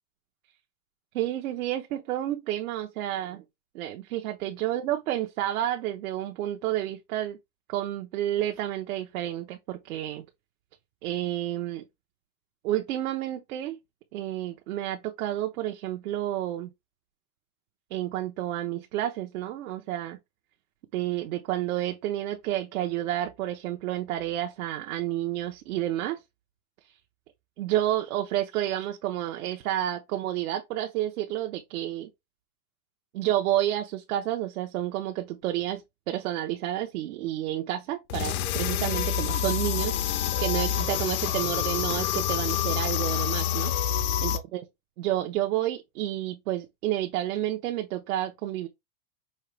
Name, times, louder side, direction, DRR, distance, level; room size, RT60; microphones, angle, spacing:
voice 1, 1.1-3.4 3.7-7.4 7.7-10.2 11.0-11.8 12.6-13.8 14.1-16.7 17.9-20.2 20.9-26.2 27.6-32.1 33.1-44.7 45.0-48.7, right 13 dB, 70° right, 1.0 m, -30 dB
sound 1, 38.1-44.4, left 9 dB, 75° left, 0.9 m, -27 dB
5.6 x 2.9 x 3.2 m
supercardioid pair, 160°, 44 cm